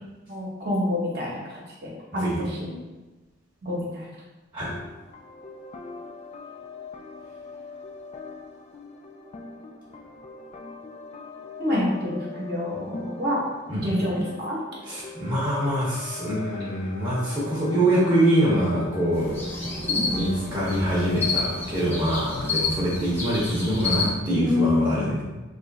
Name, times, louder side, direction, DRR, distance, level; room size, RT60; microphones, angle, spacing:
voice 1, 0.3-2.7 3.6-4.1 11.6-13.4 13.8-14.6 19.9-20.2 22.1-22.2 24.3-25.2, left 1 dB, 55° right, -5 dB, 0.9 m, -27 dB
sound 1, 4.6-22.4, left 3 dB, 35° left, 0.3 m, -41 dB
voice 2, 14.9-19.7 20.1-25.2, right 1 dB, 20° right, -8 dB, 0.8 m, -24 dB
sound 2, 19.1-24.1, left 3 dB, 10° left, 0.8 m, -29 dB
3.1 x 2.4 x 3.8 m, 1.2 s
head